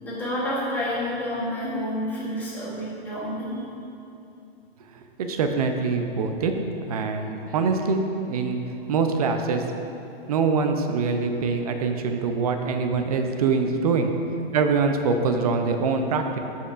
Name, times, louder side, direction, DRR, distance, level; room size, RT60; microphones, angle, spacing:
voice 1, 0.0-3.6, left 1 dB, 5° left, -8 dB, 1.1 m, -29 dB
voice 2, 5.2-6.5 6.8-8.6 8.9-9.8 10.3-14.1 14.5-16.4, right 4 dB, 40° right, 5 dB, 0.5 m, -24 dB
13.0 x 5.4 x 2.5 m, 2.7 s
hypercardioid pair, 170°, 30 cm